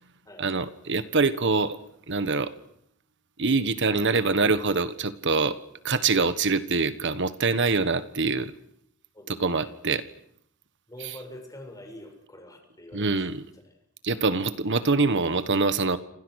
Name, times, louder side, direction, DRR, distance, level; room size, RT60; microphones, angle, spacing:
voice 1, 0.4-1.8 2.1-2.5 3.4-5.6 5.8-8.5 9.4-10.0 12.9-13.4 14.0-16.0, right 4 dB, 60° right, 12 dB, 1.4 m, -24 dB
voice 2, 9.1-9.7 10.9-13.3 13.5-13.8, left 1 dB, 15° left, 5 dB, 6.7 m, -45 dB
30.0 x 26.5 x 6.5 m, 0.72 s
head